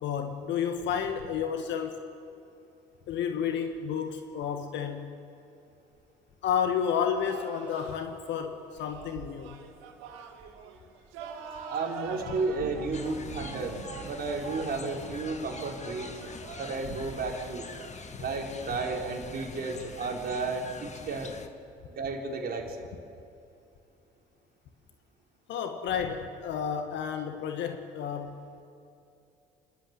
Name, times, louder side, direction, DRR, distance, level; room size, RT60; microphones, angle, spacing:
voice 1, 0.0-2.0 3.1-5.1 6.4-9.6 25.5-28.4, left 7 dB, 60° left, 6 dB, 1.8 m, -31 dB
sound 1, 7.1-20.1, right 6 dB, 70° right, 2.2 m, -44 dB
voice 2, 11.7-16.3 16.6-17.7 18.2-21.4 21.9-22.9, right 3 dB, 50° right, 1 dB, 4.4 m, -33 dB
sound 2, 12.9-21.5, left 4 dB, 35° left, 2.0 m, -44 dB
27.5 x 12.5 x 9.1 m, 2.7 s
hypercardioid pair, 55°, 21 cm